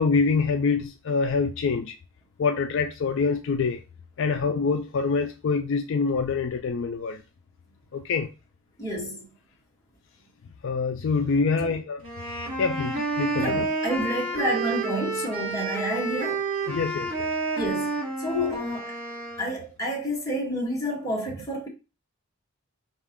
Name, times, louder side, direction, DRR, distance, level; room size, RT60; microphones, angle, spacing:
voice 1, 0.0-1.9 2.4-3.8 4.2-7.2 7.9-8.3 10.6-12.0 12.6-13.7 16.7-17.3, left 4 dB, 55° left, 0.4 m, -25 dB
voice 2, 8.8-9.3 11.6-11.8 13.3-16.4 17.6-18.9 19.4-21.7, equal, 15° left, 1.4 m, -29 dB
sound 1, 12.0-19.5, right 3 dB, 25° right, 1.8 m, -30 dB
4.8 x 2.4 x 3.5 m
head